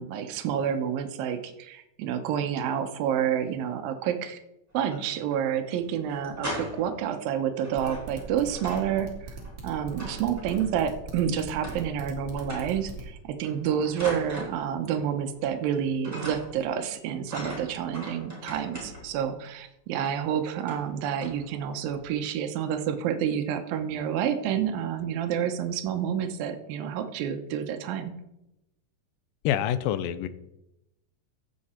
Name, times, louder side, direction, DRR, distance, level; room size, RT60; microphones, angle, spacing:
voice 1, 0.0-4.4 4.7-9.4 9.6-28.1, right 8 dB, 85° right, 7 dB, 2.7 m, -29 dB
sound 1, 4.7-5.4 5.7-5.8 6.1-7.0 7.6-8.9 9.2-10.9 11.6-12.1 12.4-12.9 13.4-15.1 15.4-15.8 16.0-16.7 17.3-19.2 20.0-20.2 20.6-20.9 21.2-21.5 21.8-22.1, equal, 5° right, 4.7 m, -40 dB
sound 2, 7.8-13.0, right 4 dB, 30° right, 2.7 m, -40 dB
voice 2, 29.4-30.3, left 11 dB, 80° left, 13 dB, 2.3 m, -26 dB
15.5 x 7.8 x 4.3 m, 0.87 s
omnidirectional pair, 4.1 m